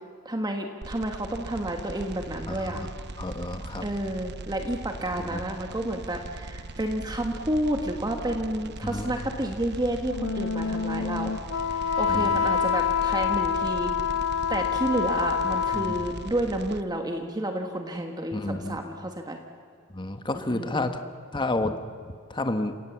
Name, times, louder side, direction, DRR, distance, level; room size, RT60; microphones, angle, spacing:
voice 1, 0.2-2.8 3.8-11.4 11.7-14.2 14.5-19.4 20.3-20.9, right 1 dB, 20° right, 4 dB, 1.5 m, -30 dB
sound 1, 0.8-16.8, right 2 dB, 55° right, 0.9 m, -40 dB
voice 2, 2.5-2.9 3.2-3.8 5.2-5.4 8.8-9.2 12.1-12.5 15.7-16.0 18.3-18.8 19.9-21.0 21.3-21.8 22.3-22.7, left 2 dB, 20° left, 7 dB, 1.2 m, -30 dB
Wind instrument woodwind instrument, 10.1-16.3, left 6 dB, 75° left, 0.5 m, -27 dB
29.5 x 17.5 x 7.3 m, 2.2 s
head